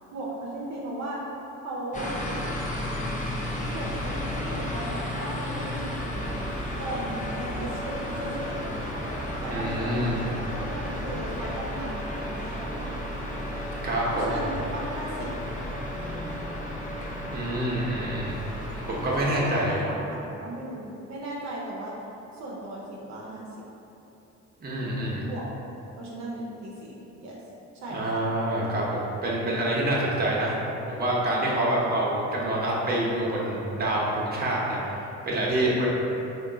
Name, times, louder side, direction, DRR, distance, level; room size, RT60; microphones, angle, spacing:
voice 1, 0.1-1.2 1.6-2.1 3.7-4.2 4.4-6.4 6.8-8.9 9.4-13.1 14.1-15.3 19.2-21.9 22.3-23.4 25.2-25.5 26.0-27.4 27.7-28.2, right 1 dB, 65° right, -5 dB, 0.6 m, -36 dB
sound 1, 1.9-19.3, left 1 dB, 25° left, 0.6 m, -33 dB
voice 2, 9.5-10.2 13.8-14.3 17.3-18.4 18.9-19.8 24.6-25.2 27.9-30.5 30.9-35.9, right 1 dB, 30° right, -5 dB, 0.8 m, -27 dB
3.5 x 2.3 x 3.7 m, 2.9 s
cardioid pair, 90°, 30 cm